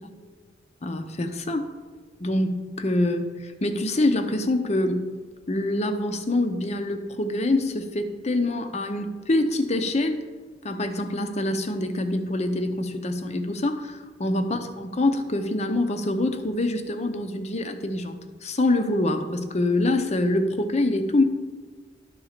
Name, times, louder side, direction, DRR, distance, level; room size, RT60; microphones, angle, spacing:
voice 1, 0.8-1.7 2.2-5.1 5.5-10.2 10.6-21.2, left 2 dB, 40° left, 8 dB, 0.7 m, -25 dB
11.0 x 4.0 x 6.5 m, 1.4 s
head